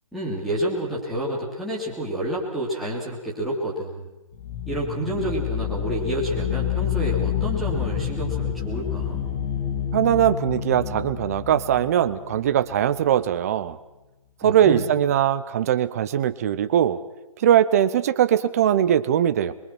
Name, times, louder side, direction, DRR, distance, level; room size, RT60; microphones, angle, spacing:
voice 1, 0.1-4.1 4.7-9.2 14.4-14.9, right 1 dB, ahead, -9 dB, 3.4 m, -29 dB
sound 1, 4.3-13.0, left 9 dB, 30° left, 2.9 m, -28 dB
voice 2, 9.9-13.8 14.4-17.0 17.4-19.5, right 10 dB, 25° right, 13 dB, 0.9 m, -21 dB
26.0 x 23.0 x 6.1 m, 1.0 s
hypercardioid pair, 165°, 18 cm